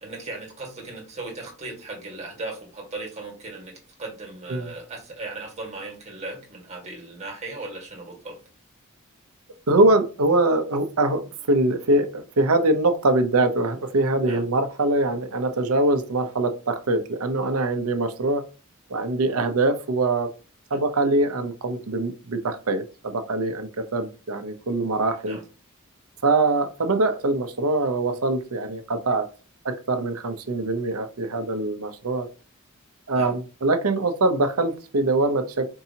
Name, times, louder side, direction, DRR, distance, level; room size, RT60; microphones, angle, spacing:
voice 1, 0.0-3.7 4.0-8.4 14.3-14.5 19.3-19.5 25.2-25.5 33.1-33.4, right 2 dB, 30° right, 0 dB, 1.6 m, -37 dB
voice 2, 9.7-11.2 11.5-18.4 18.9-20.3 20.7-25.4 26.2-29.3 29.6-32.3 33.1-35.7, right 2 dB, 75° right, 7 dB, 0.7 m, -23 dB
4.6 x 2.8 x 2.7 m, 0.33 s
head